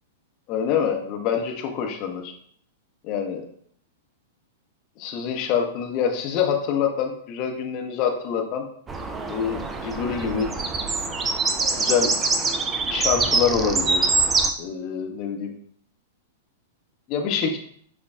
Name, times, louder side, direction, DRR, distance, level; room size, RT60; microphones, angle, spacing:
voice 1, 0.5-2.3 3.0-3.4 5.0-8.6 9.3-10.5 11.8-12.1 12.9-14.1 14.6-15.5 17.1-17.6, left 7 dB, 40° left, 3 dB, 0.7 m, -25 dB
sound 1, 8.9-14.5, right 3 dB, 20° right, 0.4 m, -24 dB
6.7 x 2.2 x 2.3 m, 0.62 s
figure-of-eight pair, 100°, 0 cm